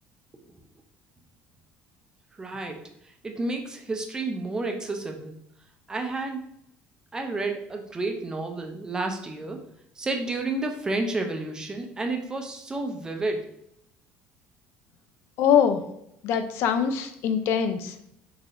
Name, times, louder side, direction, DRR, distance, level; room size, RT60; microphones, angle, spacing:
voice 1, 2.4-2.9 3.2-5.4 5.9-6.4 7.1-9.6 10.0-13.5, right 2 dB, 15° right, 4 dB, 0.5 m, -31 dB
voice 2, 15.4-15.8 16.2-17.9, left 8 dB, 65° left, 9 dB, 0.4 m, -23 dB
4.0 x 2.8 x 2.5 m, 0.75 s
cardioid pair, 135°, 5 cm